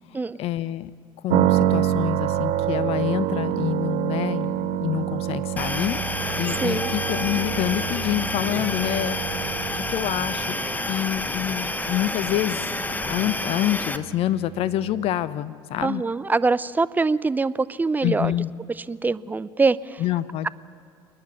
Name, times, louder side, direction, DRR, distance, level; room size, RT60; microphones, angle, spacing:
voice 1, 0.4-0.9 1.2-6.0 6.4-9.4 9.9-12.7 13.0-16.0 18.0-18.5 20.0-20.5, left 13 dB, 50° left, 16 dB, 0.8 m, -27 dB
sound 1, 1.3-15.1, right 12 dB, 55° right, 0.8 m, -28 dB
sound 2, 5.6-14.0, left 2 dB, 15° left, 1.0 m, -29 dB
voice 2, 6.6-6.9 15.8-18.3 18.8-20.0, right 3 dB, 15° right, 17 dB, 0.5 m, -24 dB
28.0 x 9.7 x 9.5 m, 2.2 s
hypercardioid pair, 70°, 12 cm